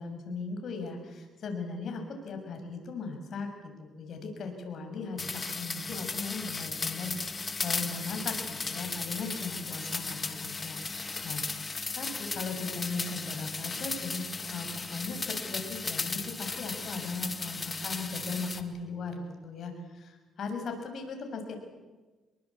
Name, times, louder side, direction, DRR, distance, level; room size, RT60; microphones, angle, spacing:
voice 1, 0.0-3.5 3.8-11.4 12.0-21.6, left 4 dB, 60° left, 4 dB, 6.7 m, -38 dB
sound 1, 5.2-18.6, left 4 dB, 30° left, 2.1 m, -36 dB
26.5 x 22.0 x 8.5 m, 1.2 s
cardioid pair, 90°, 0 cm